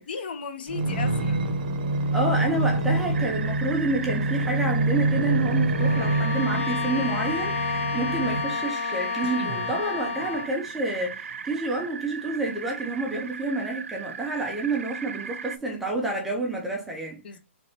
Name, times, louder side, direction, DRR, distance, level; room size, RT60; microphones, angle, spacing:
voice 1, 0.0-1.5 17.2-17.4, left 6 dB, 45° left, 0.8 m, -35 dB
sound 1, 0.7-8.6 9.2-10.5 11.1-11.2, right 2 dB, 40° right, 0.7 m, -26 dB
voice 2, 2.1-17.2, right 2 dB, 5° right, 0.4 m, -29 dB
sound 2, 3.1-15.6, right 6 dB, 90° right, 0.4 m, -38 dB
Bowed string instrument, 5.7-10.6, left 5 dB, 80° left, 0.8 m, -30 dB
3.3 x 2.9 x 4.1 m
hypercardioid pair, 170°, 7 cm